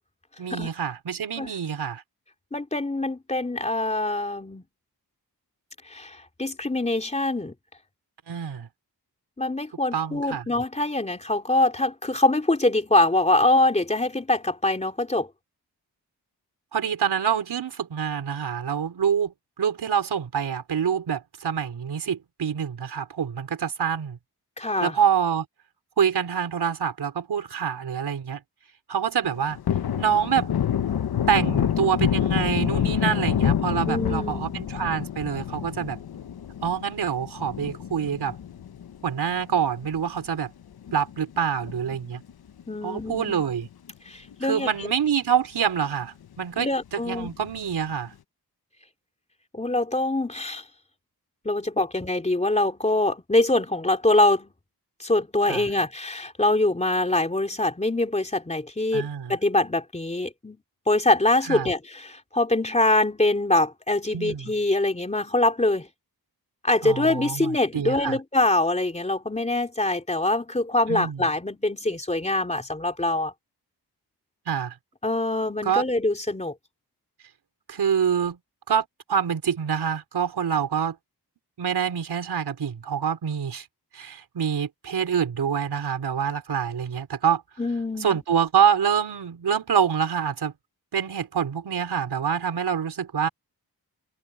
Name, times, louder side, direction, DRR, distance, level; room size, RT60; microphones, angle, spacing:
voice 1, 0.4-2.0 8.3-8.7 9.9-10.5 16.7-24.2 24.8-25.4 26.0-28.4 28.9-29.6 30.0-30.5 31.3-36.0 36.6-38.4 39.0-40.5 40.9-42.2 42.8-43.7 44.4-48.1 55.5-55.6 58.9-59.4 61.5-61.7 64.1-64.5 66.8-68.2 70.9-71.2 74.5-74.7 75.6-75.8 77.7-78.4 78.7-81.0 81.6-83.6 83.9-87.4 88.0-90.5 90.9-93.3, right 8 dB, 85° right, 4.8 m, -26 dB
voice 2, 2.5-4.6 5.9-7.5 9.4-15.3 24.6-25.0 33.9-34.6 42.7-43.4 44.1-44.9 46.6-47.3 49.5-50.6 51.5-54.5 55.0-60.6 60.9-65.9 66.6-73.3 75.0-76.5 87.6-88.2, left 2 dB, 15° left, 3.4 m, -24 dB
Thunder, 29.2-40.0 40.3-40.4 40.8-42.3 42.6-42.7 43.1-43.9 44.3-44.4 44.7-44.8 47.2-47.8, left 9 dB, 70° left, 1.0 m, -28 dB
wide cardioid pair, 150°, 38 cm